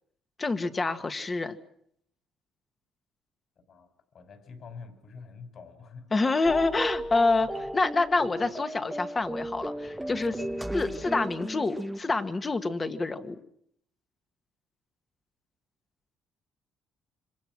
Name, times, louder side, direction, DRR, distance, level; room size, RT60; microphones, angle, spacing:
voice 1, 0.4-1.6 6.1-10.4 10.7-13.3, left 3 dB, 25° left, 9 dB, 1.8 m, -27 dB
voice 2, 3.7-6.2 7.5-7.7 8.2-8.5 10.4-10.7, left 5 dB, 50° left, 8 dB, 5.5 m, -47 dB
sound 1, 6.4-12.0, right 1 dB, 5° right, 1.1 m, -35 dB
27.0 x 25.5 x 6.2 m, 0.71 s
cardioid pair, 125°, 0 cm